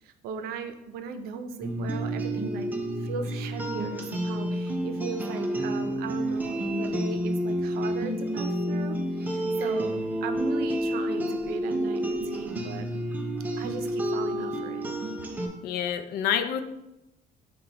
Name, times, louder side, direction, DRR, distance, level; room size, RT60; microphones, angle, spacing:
voice 1, 0.0-2.7 3.0-13.1 13.6-14.9, right 6 dB, 75° right, 8 dB, 0.5 m, -38 dB
sound 1, 1.6-15.5, equal, 10° right, 0.4 m, -29 dB
voice 2, 15.6-16.6, left 9 dB, 85° left, 9 dB, 0.4 m, -27 dB
5.6 x 2.2 x 3.9 m, 0.92 s
cardioid pair, 180°, 16 cm